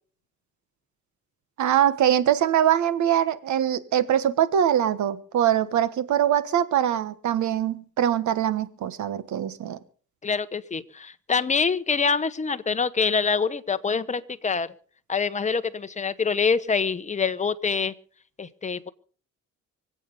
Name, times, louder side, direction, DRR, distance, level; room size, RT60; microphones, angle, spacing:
voice 1, 1.6-9.8, right 10 dB, 70° right, 15 dB, 1.3 m, -23 dB
voice 2, 10.2-14.7 15.1-17.9 18.4-18.9, left 5 dB, 25° left, 11 dB, 1.0 m, -25 dB
25.0 x 8.4 x 5.2 m, 0.42 s
cardioid pair, 90°, 30 cm